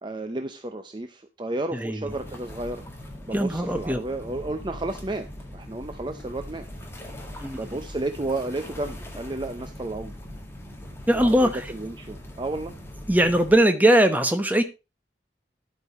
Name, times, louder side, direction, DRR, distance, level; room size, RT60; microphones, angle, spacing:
voice 1, 0.0-2.8 3.3-5.3 5.5-6.6 7.6-10.1 11.1-12.7, right 2 dB, 25° right, 0.6 m, -32 dB
voice 2, 1.7-2.0 3.3-4.0 7.4-7.6 11.1-11.5 13.1-14.6, right 1 dB, 10° right, 1.0 m, -20 dB
sound 1, 2.1-13.6, left 1 dB, 15° left, 1.8 m, -41 dB
12.0 x 5.3 x 4.2 m
head